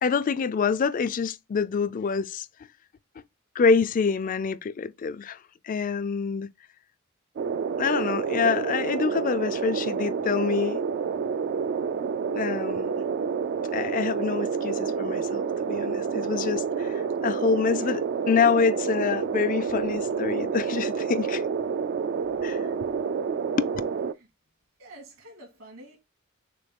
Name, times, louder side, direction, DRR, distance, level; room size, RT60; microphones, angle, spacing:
voice 1, 0.0-2.5 3.6-5.4 5.6-6.5 7.8-10.8 12.3-12.9 13.7-21.4 22.4-22.6 23.6-23.7, left 5 dB, 40° left, 0.3 m, -26 dB
sound 1, 7.4-24.1, right 6 dB, 50° right, 0.3 m, -29 dB
voice 2, 24.8-26.0, right 1 dB, 70° right, 2.2 m, -47 dB
6.5 x 2.3 x 3.5 m
head